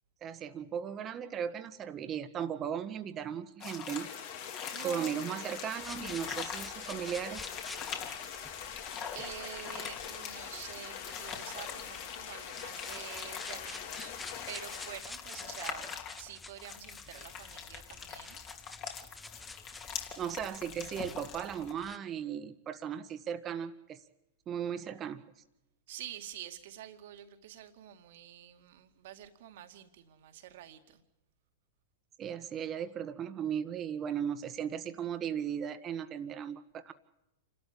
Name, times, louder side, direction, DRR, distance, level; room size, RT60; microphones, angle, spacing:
voice 1, 0.2-4.1 4.8-7.5 20.2-24.0 24.5-25.2 32.2-36.9, right 8 dB, 30° right, 10 dB, 1.5 m, -37 dB
sound 1, 3.6-21.7, left 7 dB, 40° left, 3.1 m, -44 dB
sound 2, 3.9-15.0, left 8 dB, 60° left, 3.1 m, -44 dB
voice 2, 4.7-5.3 9.1-14.1 14.5-18.4 18.9-19.0 25.9-31.0, right 11 dB, 60° right, 7 dB, 2.2 m, -47 dB
sound 3, 5.8-22.0, left 3 dB, 10° left, 0.7 m, -50 dB
28.0 x 13.0 x 8.6 m, 0.93 s
hypercardioid pair, 110°, 0 cm